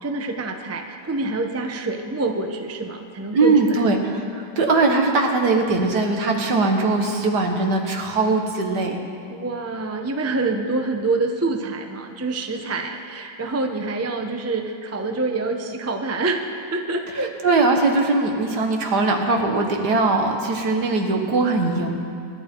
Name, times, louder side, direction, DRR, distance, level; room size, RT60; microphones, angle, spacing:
voice 1, 0.0-3.8 9.3-16.4 16.7-17.3, right 3 dB, 15° right, 4 dB, 0.6 m, -26 dB
voice 2, 3.3-9.0 17.1-21.9, right 3 dB, 70° right, 2 dB, 2.1 m, -20 dB
26.0 x 11.5 x 4.6 m, 2.4 s
omnidirectional pair, 1.9 m